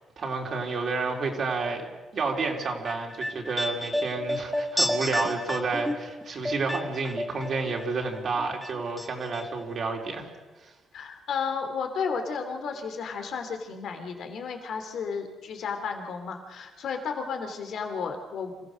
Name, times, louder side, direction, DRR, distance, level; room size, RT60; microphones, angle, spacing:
voice 1, 0.0-10.3 10.6-10.7, right 4 dB, 50° right, 1 dB, 3.7 m, -30 dB
sound 1, 2.6-7.9 8.1-9.1 9.3-9.4, left 1 dB, 5° left, 1.8 m, -31 dB
voice 2, 10.9-18.5, left 5 dB, 70° left, 5 dB, 3.1 m, -33 dB
26.5 x 15.5 x 6.4 m, 1.2 s
cardioid pair, 90°, 0 cm